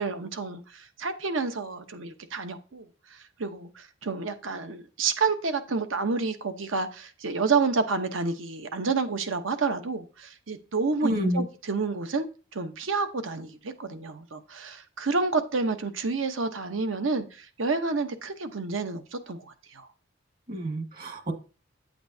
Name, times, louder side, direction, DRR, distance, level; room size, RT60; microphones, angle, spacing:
voice 1, 0.0-12.3 12.5-19.9, right 4 dB, 80° right, 9 dB, 1.0 m, -29 dB
voice 2, 11.0-11.5 20.5-21.3, equal, 45° right, 4 dB, 1.7 m, -28 dB
9.4 x 8.5 x 2.8 m, 0.34 s
head